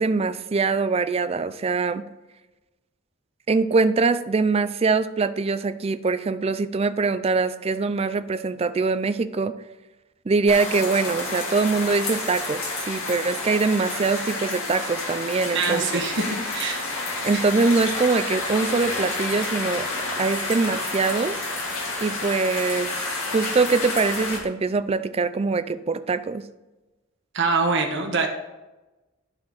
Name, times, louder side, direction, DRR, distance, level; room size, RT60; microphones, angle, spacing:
voice 1, 0.0-2.0 3.5-9.5 10.3-16.1 17.2-19.9 20.2-21.4 22.0-26.4, right 4 dB, 30° right, 12 dB, 0.4 m, -23 dB
sound 1, 10.5-24.4, left 2 dB, 75° left, 2.1 m, -30 dB
voice 2, 15.5-16.8 17.3-17.4 27.3-28.3, right 4 dB, 60° right, 3 dB, 1.3 m, -24 dB
12.0 x 4.4 x 4.0 m, 1.1 s
head